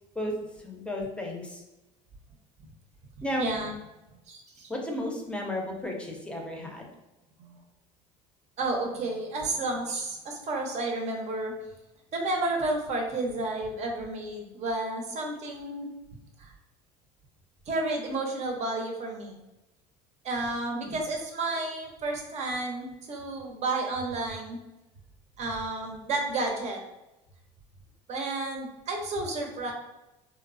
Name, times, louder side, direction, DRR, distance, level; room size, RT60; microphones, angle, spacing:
voice 1, 0.6-1.6 3.2-3.5 4.7-6.9 20.7-21.0, left 1 dB, 5° left, 0 dB, 0.6 m, -33 dB
voice 2, 3.4-3.8 4.3-4.7 7.4-7.6 8.6-11.5 12.1-15.9 16.4-16.5 17.7-19.4 20.2-24.6 25.4-26.8 28.1-29.7, right 2 dB, 45° right, 2 dB, 0.7 m, -31 dB
3.0 x 2.0 x 2.5 m, 0.97 s
supercardioid pair, 105°, 16 cm